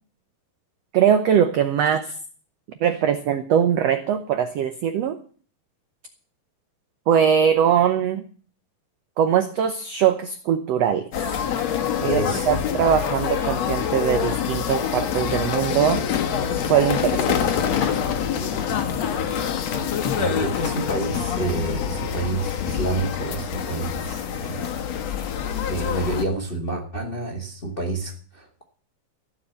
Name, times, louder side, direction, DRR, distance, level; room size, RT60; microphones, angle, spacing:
voice 1, 0.9-2.1 2.8-5.2 7.1-8.2 9.2-11.1 12.0-16.0 16.7-17.4, right 8 dB, 85° right, 10 dB, 1.4 m, -21 dB
sound 1, 11.1-26.2, left 8 dB, 55° left, 2.2 m, -26 dB
voice 2, 12.0-12.6 20.2-24.8 25.7-28.6, right 2 dB, 25° left, 2 dB, 1.2 m, -29 dB
15.0 x 7.3 x 8.1 m, 0.43 s
omnidirectional pair, 4.2 m